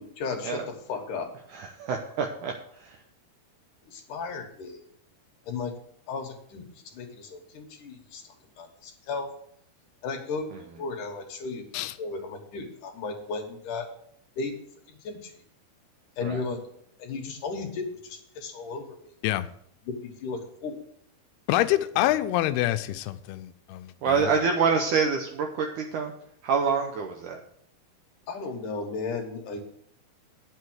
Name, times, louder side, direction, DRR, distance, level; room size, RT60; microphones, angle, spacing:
voice 1, 0.2-0.6 0.9-1.3 3.9-4.8 5.4-5.7 6.1-6.6 6.9-9.3 10.0-10.5 10.8-11.6 12.0-13.9 14.4-14.5 14.9-15.3 16.2-16.6 17.0-19.1 19.9-20.8 28.3-29.6, left 4 dB, 60° left, 2.6 m, -35 dB
voice 2, 1.5-3.0 10.5-10.8 16.2-16.4 22.0-22.2 24.0-26.1 26.4-27.4, right 5 dB, 75° right, 1.9 m, -27 dB
voice 3, 21.5-24.3, left 15 dB, 85° left, 2.6 m, -26 dB
9.7 x 6.8 x 6.3 m
omnidirectional pair, 4.5 m